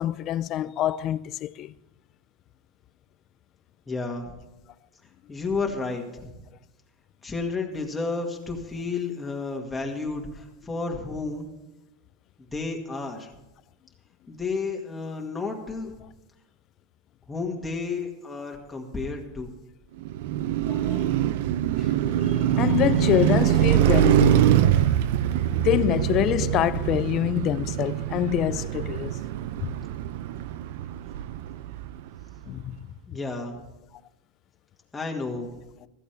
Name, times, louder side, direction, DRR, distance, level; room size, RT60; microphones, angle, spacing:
voice 1, 0.0-1.7 20.7-21.1 21.8-21.9 22.2-25.0 25.5-29.2 29.6-29.7 32.5-32.9 35.8-35.9, left 13 dB, 35° left, 0.4 m, -26 dB
voice 2, 3.9-4.3 5.3-6.4 7.2-11.5 12.5-13.3 14.3-15.9 17.3-19.5 33.1-33.6 34.9-35.5, left 4 dB, 10° left, 1.9 m, -31 dB
Car passing by, 20.0-32.2, right 11 dB, 70° right, 0.6 m, -24 dB
15.0 x 14.0 x 3.4 m
supercardioid pair, 145°, 0 cm